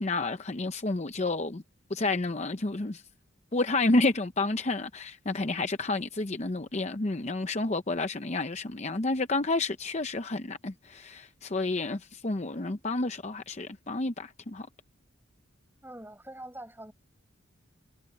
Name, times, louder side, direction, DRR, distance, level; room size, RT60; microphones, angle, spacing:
voice 1, 0.0-1.6 1.9-3.0 3.5-14.7, left 2 dB, 35° left, 0.7 m, -30 dB
voice 2, 15.8-16.9, right 1 dB, 10° right, 7.3 m, -44 dB
head